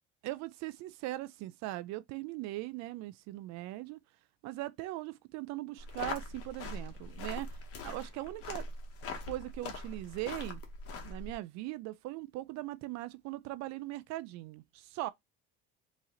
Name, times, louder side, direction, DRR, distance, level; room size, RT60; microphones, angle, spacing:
voice 1, 0.2-4.0 4.4-8.7 9.2-10.6 11.0-15.1, right 17 dB, 65° right, 0.4 m, -40 dB
sound 1, 5.8-11.3, left 3 dB, 50° left, 1.2 m, -42 dB
4.1 x 3.0 x 3.7 m
cardioid pair, 145°, 30 cm